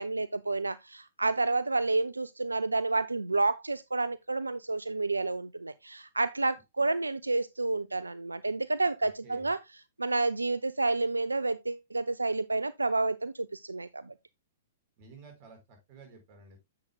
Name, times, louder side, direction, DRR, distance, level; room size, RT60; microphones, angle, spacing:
voice 1, 0.0-9.6 10.0-14.1, right 3 dB, 90° right, 0.4 m, -30 dB
voice 2, 9.2-9.5 15.0-16.6, right 4 dB, 45° right, 5.2 m, -52 dB
10.5 x 7.8 x 2.3 m
figure-of-eight pair, 110°, 0 cm